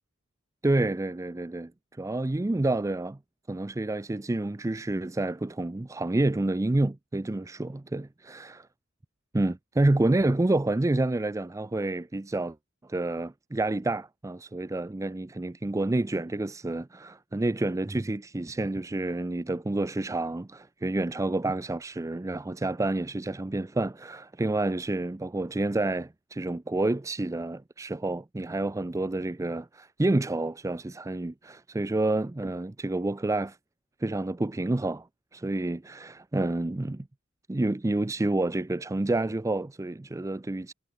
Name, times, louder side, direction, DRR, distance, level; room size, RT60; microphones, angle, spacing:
voice 1, 0.6-1.7 2.0-3.2 3.5-8.7 9.3-12.6 12.8-33.6 34.0-35.1 35.3-37.1 37.5-40.7, right 2 dB, 15° right, 0.4 m, -29 dB
head